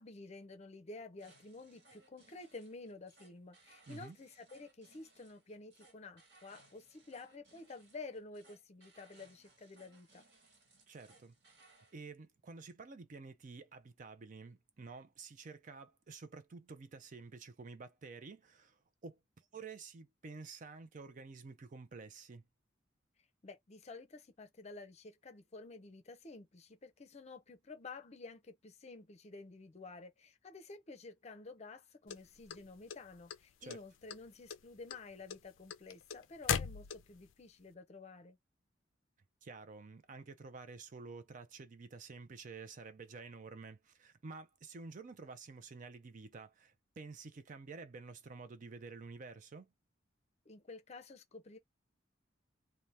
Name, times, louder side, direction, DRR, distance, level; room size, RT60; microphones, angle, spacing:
voice 1, 0.0-10.2 23.4-38.4 50.5-51.6, left 3 dB, 35° left, 0.5 m, -51 dB
sound 1, 1.2-12.0, right 2 dB, 60° right, 1.5 m, -65 dB
voice 2, 10.9-11.3 11.9-19.2 19.5-22.4 33.6-33.8 39.4-49.7, right 4 dB, 40° right, 0.4 m, -50 dB
sound 2, 32.1-33.4 33.7-34.2 34.5-37.3, left 8 dB, 85° left, 0.4 m, -38 dB
2.8 x 2.1 x 3.2 m
head